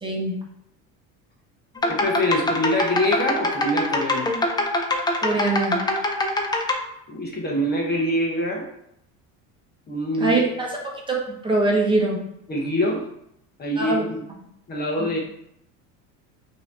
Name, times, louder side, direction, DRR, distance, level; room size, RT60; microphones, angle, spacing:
voice 1, 0.0-0.4 5.2-5.8 10.2-10.7 11.1-12.2 13.8-14.0 15.0-15.1, right 2 dB, 15° right, -2 dB, 1.0 m, -22 dB
sound 1, 1.8-6.7, left 2 dB, 10° left, 0.5 m, -24 dB
voice 2, 1.9-4.3 7.1-8.7 9.9-10.4 12.5-13.1 13.6-14.2 14.7-15.2, left 1 dB, 30° left, -2 dB, 0.9 m, -24 dB
5.3 x 2.9 x 3.4 m, 0.77 s
cardioid pair, 130°, 35 cm